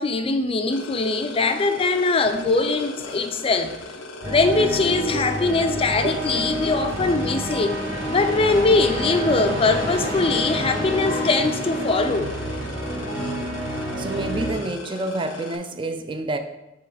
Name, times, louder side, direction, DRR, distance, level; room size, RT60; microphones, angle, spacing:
voice 1, 0.0-3.7 4.2-7.8 8.1-12.3, left 3 dB, 30° left, 8 dB, 0.4 m, -21 dB
sound 1, 0.7-15.5, left 2 dB, 85° left, 0.7 m, -38 dB
sound 2, 4.2-14.5, equal, 70° right, 2.0 m, -28 dB
voice 2, 14.0-16.4, right 2 dB, 25° right, 8 dB, 0.4 m, -28 dB
5.7 x 3.8 x 4.9 m, 0.98 s
head